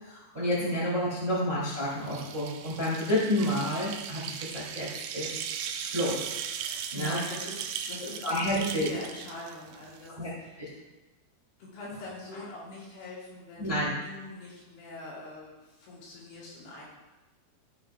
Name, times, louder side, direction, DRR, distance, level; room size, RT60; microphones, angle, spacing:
voice 1, 0.0-4.9 5.1-5.4 5.7-6.3 6.9-7.2 8.2-8.9 10.2-10.3 10.6-10.7 13.6-13.9, equal, 15° right, -7 dB, 2.3 m, -29 dB
sound 1, 1.7-10.1, right 8 dB, 85° right, 2.5 m, -38 dB
voice 2, 6.6-10.7 11.6-13.7 14.0-16.8, left 2 dB, 65° left, -6 dB, 5.6 m, -43 dB
16.0 x 8.6 x 2.5 m, 1.1 s
omnidirectional pair, 5.8 m